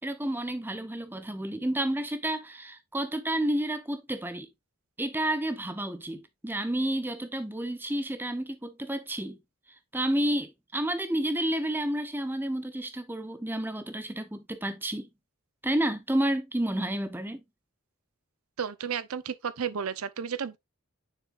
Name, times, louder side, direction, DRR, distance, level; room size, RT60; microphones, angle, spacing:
voice 1, 0.0-4.5 5.0-9.4 9.9-15.1 15.6-17.4, right 1 dB, 10° right, 0.7 m, -30 dB
voice 2, 18.6-20.6, right 7 dB, 90° right, 0.6 m, -32 dB
6.7 x 6.3 x 2.4 m
head